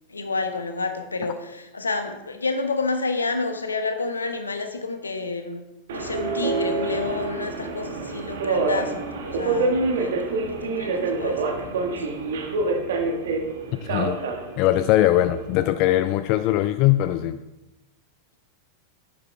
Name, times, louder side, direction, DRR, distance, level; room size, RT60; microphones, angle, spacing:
voice 1, 0.1-5.6 5.9-12.1, left 3 dB, 75° left, 7 dB, 1.2 m, -30 dB
Subway metro underground, 5.9-15.6, right 3 dB, 60° right, 1.7 m, -27 dB
voice 2, 13.8-14.2 14.6-17.4, left 14 dB, 45° left, 11 dB, 0.4 m, -21 dB
11.5 x 10.5 x 3.4 m, 0.99 s
figure-of-eight pair, 90°, 0 cm